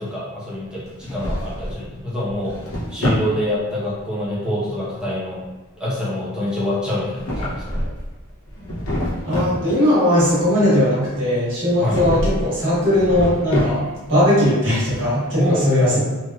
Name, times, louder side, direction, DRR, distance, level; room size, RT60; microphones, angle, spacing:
voice 1, 0.0-2.5 2.9-5.4 5.8-7.8 11.8-12.2 15.3-16.0, left 1 dB, 5° right, -9 dB, 0.8 m, -24 dB
Drawer open or close, 0.9-1.8 2.3-3.3 6.9-8.1 8.5-9.6 11.8-12.5 12.8-14.1, left 1 dB, 70° left, 0.8 m, -26 dB
voice 2, 9.2-13.8 14.1-16.0, left 1 dB, 55° right, -9 dB, 1.2 m, -18 dB
3.1 x 2.5 x 2.3 m, 1.2 s
head